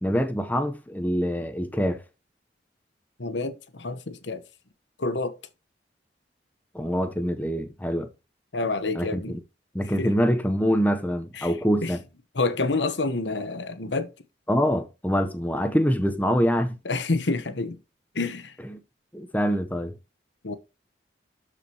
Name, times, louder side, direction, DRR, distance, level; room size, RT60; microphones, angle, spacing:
voice 1, 0.0-2.0 6.7-8.1 8.9-9.4 9.7-12.0 14.5-16.8 18.6-18.8 19.1-19.9, equal, 10° left, 0.8 m, -25 dB
voice 2, 3.2-4.4 5.0-5.3 8.5-9.3 10.0-10.1 11.4-11.5 11.8-11.9 12.3-14.1 16.8-17.8 18.1-18.5 20.4-20.5, left 3 dB, 85° left, 1.1 m, -28 dB
12.5 x 5.0 x 2.9 m
head